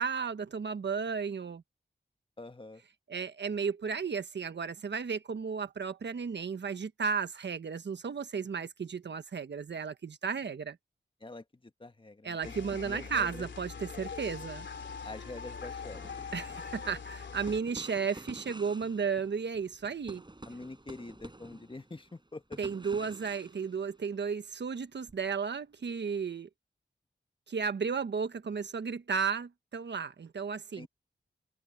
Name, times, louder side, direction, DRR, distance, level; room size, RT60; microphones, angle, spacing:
voice 1, 0.0-1.6 3.1-10.8 12.2-14.7 16.3-20.2 22.6-26.5 27.5-30.9, right 6 dB, 75° right, 1.3 m, -34 dB
voice 2, 2.4-2.8 11.2-13.5 15.0-16.0 20.5-22.6 30.8-30.9, left 2 dB, 30° left, 1.6 m, -45 dB
sound 1, 12.4-17.6, left 5 dB, 80° left, 3.0 m, -42 dB
sound 2, 15.9-24.3 25.1-25.3, right 2 dB, 25° right, 5.5 m, -50 dB
cardioid pair, 50°, 19 cm